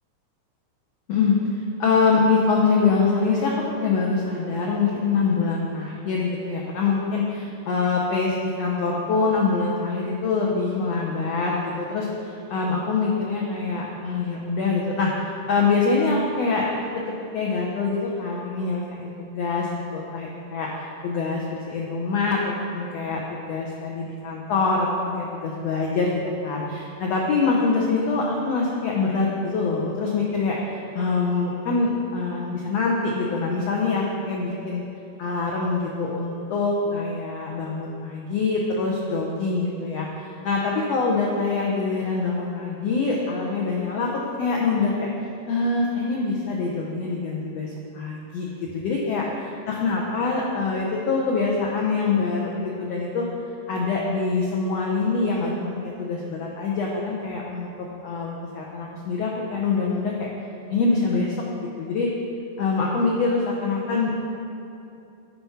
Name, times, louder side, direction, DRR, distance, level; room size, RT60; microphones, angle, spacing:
voice 1, 1.8-3.5 3.8-17.0 17.3-20.7 21.0-34.8 35.2-40.1 40.5-45.1 45.5-49.2 49.7-53.3 53.7-57.7 58.0-60.3 60.7-61.4 61.8-62.1 62.6-64.2, left 4 dB, 85° left, -2 dB, 1.4 m, -24 dB
11.0 x 4.6 x 5.6 m, 2.7 s
omnidirectional pair, 4.0 m